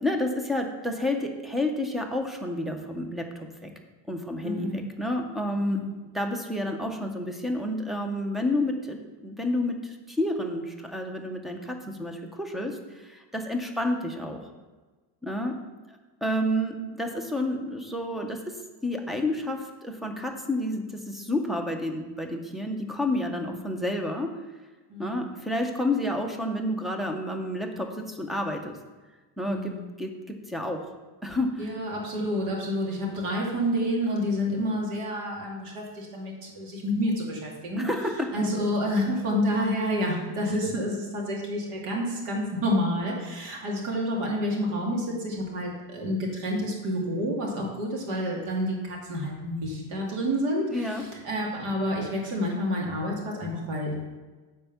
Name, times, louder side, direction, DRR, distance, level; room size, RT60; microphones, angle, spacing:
voice 1, 0.0-3.7 4.1-5.8 6.1-9.0 9.2-14.4 15.2-15.5 15.9-18.6 18.8-24.3 25.0-28.8 29.4-29.7 30.0-30.9 31.2-31.5 37.8-38.3 50.7-51.0, left 1 dB, ahead, 4 dB, 0.3 m, -30 dB
voice 2, 4.4-4.8 5.6-5.9 23.4-23.8 24.9-25.3 29.4-29.8 31.6-37.9 38.3-53.9, equal, 90° right, -2 dB, 2.6 m, -29 dB
8.9 x 4.4 x 7.0 m, 1.3 s
cardioid pair, 175°, 41 cm